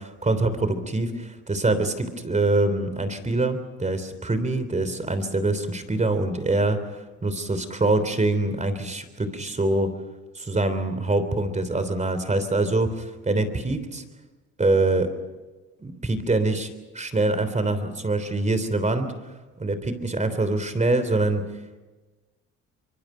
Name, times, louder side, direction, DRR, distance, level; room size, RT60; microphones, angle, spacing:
voice 1, 0.0-6.8 7.2-9.9 10.3-14.0 14.6-15.1 15.8-16.7 16.9-19.1 19.6-21.4, right 2 dB, 25° right, 11 dB, 3.3 m, -24 dB
25.5 x 23.5 x 5.6 m, 1.2 s
cardioid pair, 90°, 30 cm